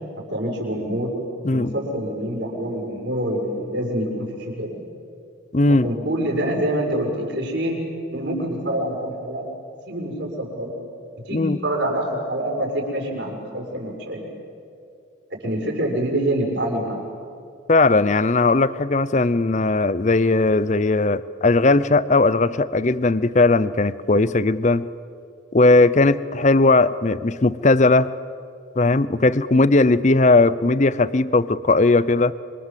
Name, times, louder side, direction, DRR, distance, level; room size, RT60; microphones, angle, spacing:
voice 1, 0.2-1.1 1.5-4.9 5.8-7.8 8.1-9.5 9.8-10.7 11.2-14.3 15.3-17.0, right 1 dB, 60° right, -1 dB, 6.2 m, -26 dB
voice 2, 5.5-5.9 11.3-11.6 17.7-24.9 25.5-28.1 28.8-32.3, left 2 dB, 35° left, 17 dB, 0.6 m, -18 dB
27.0 x 25.0 x 7.6 m, 2.4 s
head